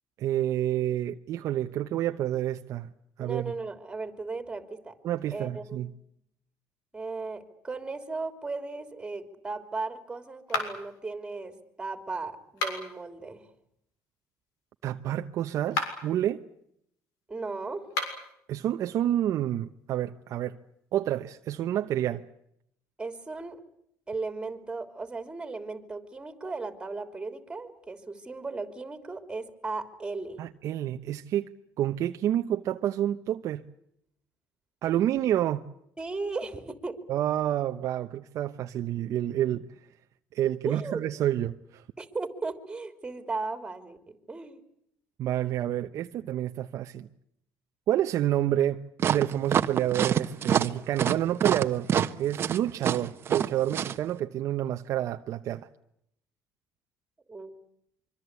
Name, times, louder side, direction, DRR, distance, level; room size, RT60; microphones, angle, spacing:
voice 1, 0.2-2.9 3.2-3.5 5.0-5.9 14.8-16.4 18.5-20.6 20.9-22.2 30.4-31.5 31.8-33.6 34.8-35.6 37.1-39.7 40.3-41.8 45.2-47.1 47.9-48.8 49.1-51.9 52.2-55.7, right 12 dB, 55° right, 0.9 m, -28 dB
voice 2, 3.2-4.9 5.3-5.8 6.9-13.4 17.3-17.9 23.0-23.6 24.1-30.4 36.0-37.0 40.6-41.0 42.0-44.6 57.3-57.6, right 3 dB, 10° right, 3.3 m, -36 dB
sound 1, 10.5-11.0 12.5-13.0 15.6-16.1 17.8-18.3, left 3 dB, 90° left, 7.0 m, -32 dB
sound 2, 49.0-53.9, right 9 dB, 40° right, 1.2 m, -26 dB
25.0 x 24.5 x 8.3 m
cardioid pair, 135°, 6 cm